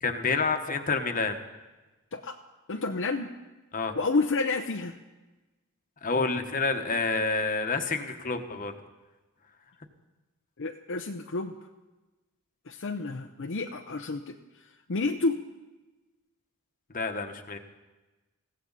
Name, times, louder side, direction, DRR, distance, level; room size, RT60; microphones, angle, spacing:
voice 1, 0.0-1.4 3.7-4.0 6.0-8.7 16.9-17.6, left 4 dB, 35° left, 6 dB, 1.2 m, -28 dB
voice 2, 2.7-3.3 3.9-5.0 10.6-11.6 12.7-15.4, left 3 dB, 60° left, 3 dB, 0.7 m, -30 dB
21.0 x 16.0 x 4.1 m, 1.1 s
head